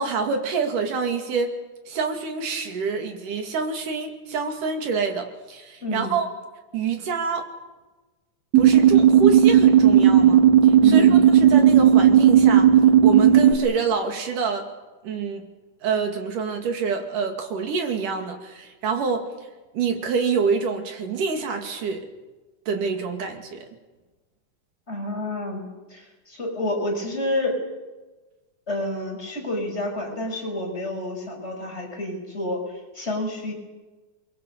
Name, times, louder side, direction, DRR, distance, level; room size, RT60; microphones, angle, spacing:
voice 1, 0.0-1.5 1.9-6.3 6.7-7.5 8.6-12.7 13.0-14.7 15.0-15.5 15.8-19.3 19.7-22.1 22.7-23.7, right 5 dB, 90° right, 4 dB, 4.1 m, -26 dB
voice 2, 5.8-6.1 10.8-11.2 24.9-27.6 28.7-33.5, left 1 dB, 20° left, 0 dB, 6.3 m, -29 dB
sound 1, 8.5-13.5, right 9 dB, 60° right, 3.3 m, -14 dB
28.5 x 23.0 x 6.9 m, 1.2 s
omnidirectional pair, 3.6 m